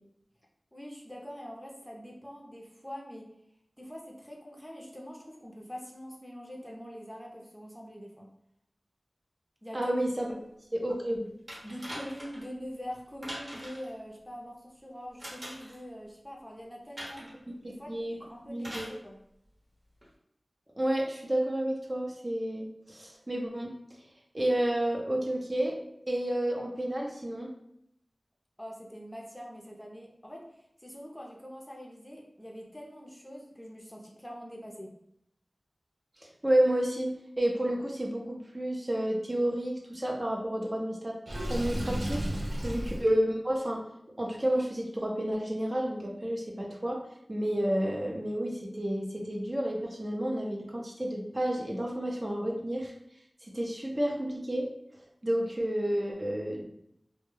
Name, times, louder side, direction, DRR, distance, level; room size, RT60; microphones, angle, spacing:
voice 1, 0.7-3.3 3.8-8.3 9.6-9.9 10.3-10.4 11.6-17.2 17.6-17.9 18.2-19.2 28.6-34.9, equal, 10° left, -1 dB, 0.5 m, -44 dB
voice 2, 9.7-10.3 10.7-11.3 17.6-18.1 18.5-18.9 20.8-23.7 24.3-25.8 26.1-27.5 36.4-41.2 41.5-43.8 44.2-47.0 47.3-52.9 53.4-54.7 55.2-56.6, right 1 dB, 35° right, -1 dB, 0.5 m, -30 dB
sound 1, 11.5-12.5 13.2-13.9 15.2-15.8 17.0-17.4 18.6-19.0 20.0-20.1, equal, 55° right, 0.9 m, -42 dB
Water / Sink (filling or washing), 41.3-43.0, equal, 90° right, 0.4 m, -32 dB
2.2 x 2.1 x 3.1 m, 0.75 s
wide cardioid pair, 45°, 0 cm